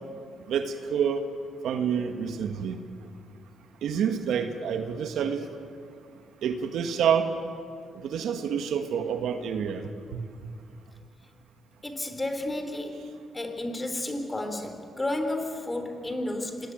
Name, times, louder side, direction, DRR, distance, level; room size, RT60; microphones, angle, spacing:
voice 1, 0.5-1.2 1.6-2.8 3.8-5.5 6.4-7.3 8.0-10.2, right 7 dB, 75° right, 7 dB, 2.0 m, -28 dB
voice 2, 11.8-13.1 13.3-16.7, left 1 dB, 15° left, 7 dB, 3.7 m, -32 dB
26.5 x 20.0 x 9.3 m, 2.2 s
cardioid pair, 90°, 0 cm